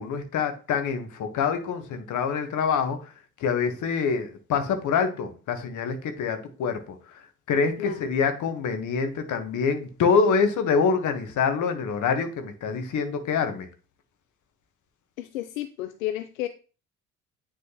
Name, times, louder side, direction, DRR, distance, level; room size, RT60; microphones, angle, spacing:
voice 1, 0.0-3.1 3.4-6.9 7.5-13.7, left 5 dB, 45° left, 8 dB, 1.3 m, -25 dB
voice 2, 15.2-16.5, left 13 dB, 75° left, 10 dB, 0.5 m, -32 dB
9.4 x 3.8 x 3.0 m, 0.36 s
figure-of-eight pair, 50°, 40 cm